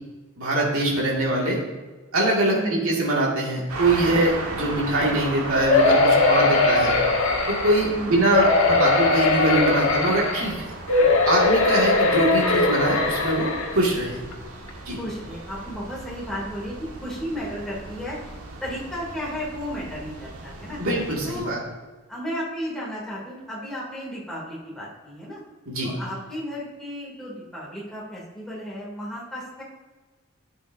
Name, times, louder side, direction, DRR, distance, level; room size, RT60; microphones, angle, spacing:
voice 1, 0.4-1.6 2.1-6.9 7.5-10.7 11.3-14.2 14.9-15.0 20.8-21.6 25.7-25.9, right 1 dB, 70° right, -4 dB, 2.2 m, -23 dB
voice 2, 2.5-3.0 7.8-8.3 10.9-11.2 15.0-16.7 17.0-18.3 18.6-20.8 21.2-21.5 22.1-25.4 25.8-29.6, equal, ahead, -7 dB, 2.8 m, -34 dB
sound 1, 3.7-21.4, right 2 dB, 90° right, 1.5 m, -37 dB
sound 2, 5.7-7.9 8.3-10.5 10.9-13.7 14.3-14.4 14.7-14.8, left 3 dB, 65° left, 1.4 m, -20 dB
12.0 x 8.0 x 2.7 m, 1.3 s
head